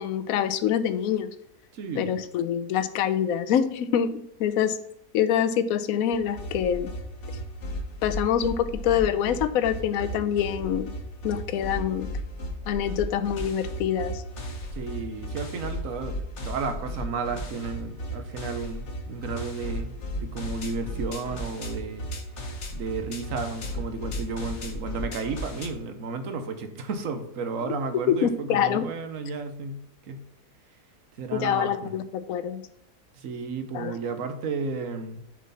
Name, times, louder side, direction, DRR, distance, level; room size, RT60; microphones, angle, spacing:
voice 1, 0.0-1.3 2.0-4.8 5.1-6.9 8.0-10.9 11.2-12.1 12.7-14.2 28.1-28.8 31.3-32.6 33.7-33.9, left 9 dB, 70° left, 12 dB, 1.0 m, -25 dB
voice 2, 1.7-2.2 14.7-16.2 16.4-22.1 22.7-29.8 30.1-30.2 31.2-31.9 33.2-35.2, right 4 dB, 60° right, 8 dB, 1.3 m, -33 dB
sound 1, 6.1-25.7, equal, 50° left, 1.2 m, -35 dB
7.5 x 5.6 x 4.2 m, 0.77 s
omnidirectional pair, 1.7 m